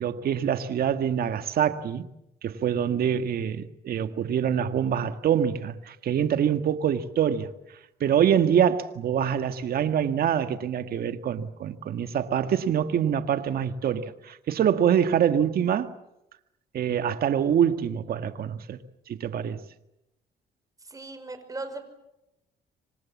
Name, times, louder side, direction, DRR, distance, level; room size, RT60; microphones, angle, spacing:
voice 1, 0.0-2.1 2.4-7.5 8.0-15.9 16.7-18.8 19.1-19.6, right 9 dB, 65° right, 1.8 m, -25 dB
voice 2, 20.8-21.8, right 2 dB, 20° right, 5.6 m, -37 dB
27.0 x 25.5 x 7.3 m
cardioid pair, 95°, 17 cm